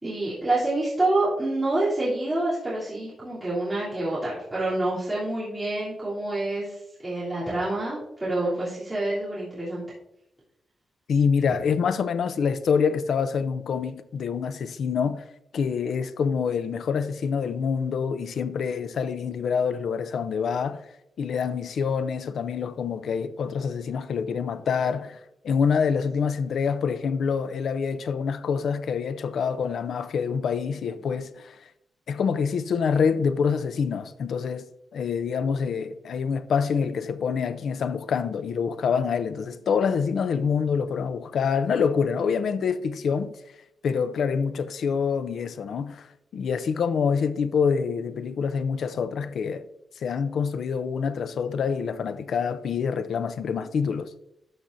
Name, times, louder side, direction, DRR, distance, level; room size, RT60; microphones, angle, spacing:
voice 1, 0.0-9.9, right 2 dB, 10° right, 3.2 m, -27 dB
voice 2, 11.1-15.3 15.5-20.8 21.2-25.2 25.4-31.6 32.1-34.7 34.9-43.3 43.8-49.7 50.0-54.1, left 6 dB, 70° left, 0.5 m, -26 dB
13.0 x 5.8 x 2.6 m
wide cardioid pair, 160°, 0 cm